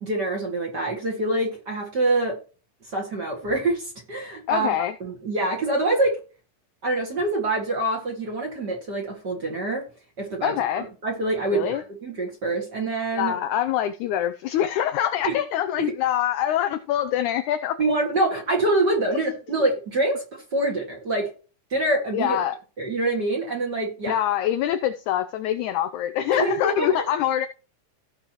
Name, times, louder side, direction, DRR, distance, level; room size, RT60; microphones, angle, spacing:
voice 1, 0.0-2.4 2.9-4.7 5.0-6.2 6.8-9.8 10.2-13.3 15.2-15.4 15.8-15.9 17.8-21.3 21.7-22.4 22.8-24.2 26.3-27.0, right 2 dB, 35° right, 2.2 m, -25 dB
voice 2, 4.5-4.9 10.4-10.8 11.5-11.8 13.1-17.8 19.1-19.2 22.1-22.6 24.1-27.5, left 11 dB, 85° left, 1.7 m, -24 dB
16.5 x 5.6 x 3.1 m
omnidirectional pair, 4.1 m